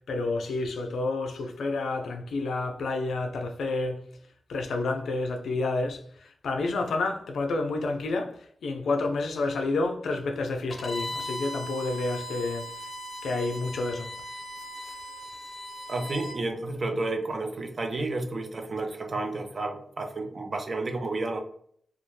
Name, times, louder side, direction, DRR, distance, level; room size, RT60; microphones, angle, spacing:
voice 1, 0.0-4.1 4.5-12.7 13.2-14.1, left 3 dB, 90° left, 0.3 m, -29 dB
Bowed string instrument, 10.7-16.4, equal, 40° left, 0.5 m, -38 dB
voice 2, 15.9-21.4, right 2 dB, 55° right, 0.5 m, -31 dB
2.2 x 2.0 x 3.0 m
cardioid pair, 45°, 0 cm